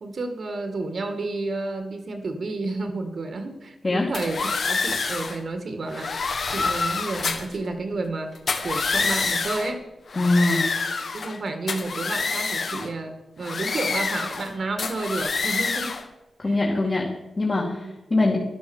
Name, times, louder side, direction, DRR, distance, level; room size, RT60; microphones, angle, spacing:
voice 1, 0.0-6.1 6.5-8.3 8.6-9.8 11.1-16.0 16.4-16.6 16.8-17.0 17.8-17.9, right 2 dB, 60° right, 6 dB, 2.0 m, -31 dB
sound 1, 4.1-5.4 5.9-7.6 8.4-9.7 10.1-11.4 11.7-12.9 13.4-14.5 14.8-16.0, left 4 dB, 60° left, 1.6 m, -27 dB
voice 2, 10.1-10.6 16.4-18.4, left 2 dB, 35° left, -2 dB, 2.4 m, -23 dB
11.5 x 11.5 x 7.2 m, 1.0 s
cardioid pair, 80°, 0 cm